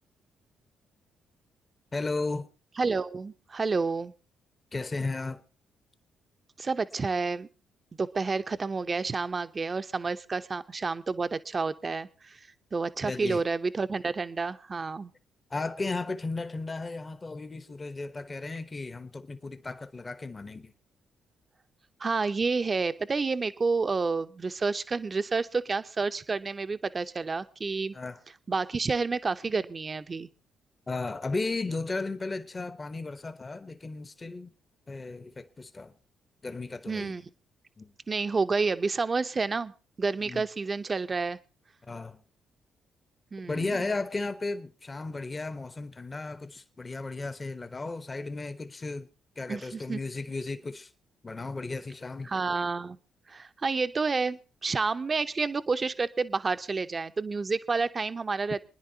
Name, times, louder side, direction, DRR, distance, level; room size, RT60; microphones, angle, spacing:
voice 1, 1.9-2.5 4.7-5.4 13.0-13.4 15.5-20.7 27.9-28.2 30.9-34.5 34.9-35.9 36.4-37.1 37.8-37.9 40.2-40.4 41.9-42.2 43.5-49.1 49.4-50.9 51.2-52.3, left 3 dB, 30° left, 1.1 m, -35 dB
voice 2, 2.8-4.1 6.6-7.5 7.9-12.4 12.7-15.1 22.0-27.9 28.5-30.3 36.9-37.2 38.1-39.7 40.0-41.4 43.3-43.9 49.5-50.0 52.2-53.0 53.3-58.6, right 4 dB, 40° right, 0.7 m, -29 dB
27.0 x 10.0 x 2.8 m
hypercardioid pair, 50°, 0 cm